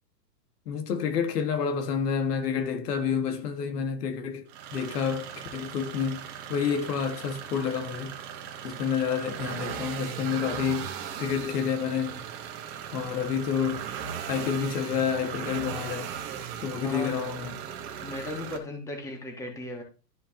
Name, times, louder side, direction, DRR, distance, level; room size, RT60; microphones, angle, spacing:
voice 1, 0.7-6.2 6.5-8.1 8.6-12.2 12.9-13.9 14.3-16.1 16.6-17.5, left 7 dB, 70° left, 1.8 m, -29 dB
sound 1, 4.5-18.6, right 8 dB, 30° right, 1.1 m, -38 dB
voice 2, 16.8-17.2 18.0-19.8, left 2 dB, 5° left, 1.4 m, -36 dB
12.5 x 4.5 x 2.9 m
hypercardioid pair, 150°, 50 cm